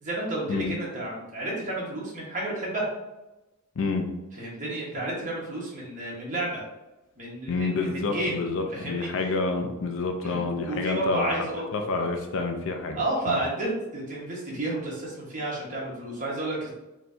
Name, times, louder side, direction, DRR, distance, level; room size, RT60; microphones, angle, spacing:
voice 1, 0.0-2.9 4.4-6.6 7.2-8.4 8.7-9.1 10.2-11.7 12.9-16.7, right 1 dB, 35° right, -5 dB, 1.3 m, -31 dB
voice 2, 3.8-4.1 7.5-11.4 11.7-13.0 13.3-13.4, left 3 dB, 60° left, 4 dB, 0.5 m, -28 dB
4.4 x 3.2 x 2.7 m, 0.99 s
head